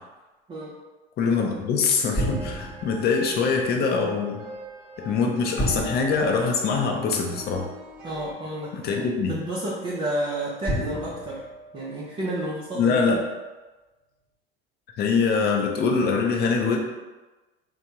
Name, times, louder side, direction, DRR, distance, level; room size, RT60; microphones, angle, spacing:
voice 1, 1.2-4.4 5.0-7.7 8.7-9.3 12.7-13.2 15.0-16.8, left 5 dB, 30° left, 1 dB, 0.5 m, -23 dB
sound 1, 2.1-3.1 5.6-7.2 8.4-8.5 10.6-12.4, right 1 dB, 15° left, 1.0 m, -32 dB
sound 2, 2.1-8.3, right 1 dB, 45° right, 1.0 m, -42 dB
voice 2, 8.0-11.4 11.7-13.2, right 1 dB, 20° right, -6 dB, 0.5 m, -31 dB
3.3 x 2.1 x 2.8 m, 1.2 s
hypercardioid pair, 80°, 31 cm